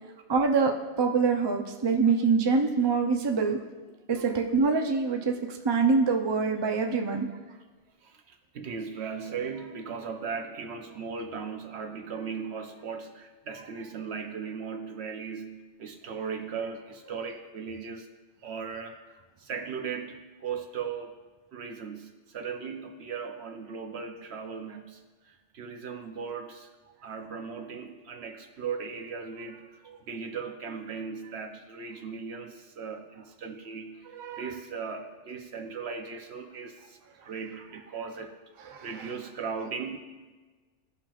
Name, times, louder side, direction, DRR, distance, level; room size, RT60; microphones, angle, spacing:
voice 1, 0.3-3.6 4.1-7.3 34.1-34.6 38.6-39.1, right 4 dB, 30° right, 3 dB, 0.5 m, -25 dB
voice 2, 8.0-18.1 18.4-21.2 21.5-26.7 27.0-40.0, right 5 dB, 70° right, 5 dB, 1.0 m, -38 dB
16.0 x 5.8 x 2.4 m, 1.3 s
omnidirectional pair, 1.2 m